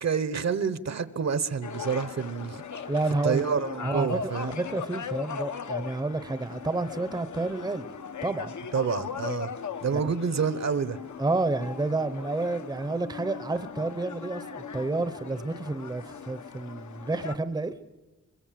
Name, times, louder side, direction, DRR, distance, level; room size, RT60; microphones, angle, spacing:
voice 1, 0.0-2.6 3.2-4.6 8.7-9.5 9.8-11.0, right 6 dB, 60° right, 1.0 m, -28 dB
sound 1, 1.6-17.4, left 6 dB, 75° left, 0.9 m, -39 dB
voice 2, 2.9-3.4 3.8-7.8 8.2-8.5 9.9-10.1 11.2-17.7, right 2 dB, 15° right, 0.7 m, -30 dB
23.0 x 23.0 x 7.6 m
wide cardioid pair, 165°, 30 cm